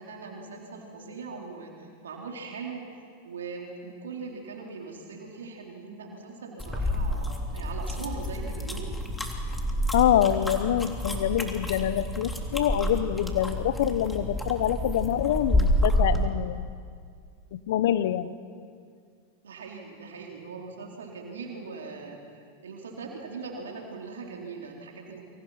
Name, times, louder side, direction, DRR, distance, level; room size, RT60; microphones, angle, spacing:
voice 1, 0.0-2.9 3.2-9.0 19.4-25.2, right 4 dB, 80° right, 0 dB, 4.0 m, -40 dB
sound 1, 6.6-16.2, equal, 5° left, 3.4 m, -29 dB
voice 2, 9.9-16.7 17.5-18.3, left 11 dB, 65° left, 14 dB, 1.1 m, -26 dB
28.5 x 25.5 x 5.9 m, 2.2 s
hypercardioid pair, 95°, 0 cm